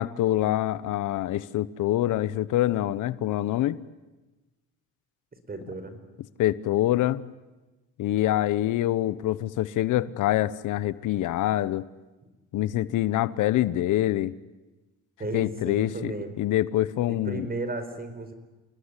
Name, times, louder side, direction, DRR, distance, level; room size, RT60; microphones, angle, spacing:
voice 1, 0.0-3.8 6.4-7.2 8.0-11.9 12.5-14.3 15.3-17.5, left 14 dB, 85° left, 18 dB, 1.0 m, -25 dB
voice 2, 5.5-6.0 15.2-16.3 17.1-18.3, right 2 dB, 30° right, 10 dB, 4.7 m, -34 dB
28.5 x 20.0 x 9.9 m, 1.1 s
cardioid pair, 90°, 30 cm